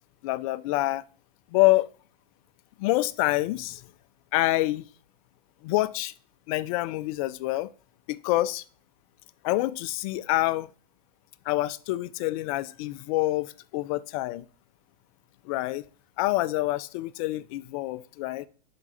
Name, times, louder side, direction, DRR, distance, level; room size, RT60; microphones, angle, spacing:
voice 1, 0.2-1.0 1.5-1.9 2.8-3.8 4.3-4.8 5.6-6.1 6.5-7.7 8.1-8.6 9.4-10.7 11.5-14.4 15.5-15.8 16.2-18.5, left 18 dB, 40° left, 0.4 m, -26 dB
5.8 x 3.7 x 5.4 m
hypercardioid pair, 135°, 29 cm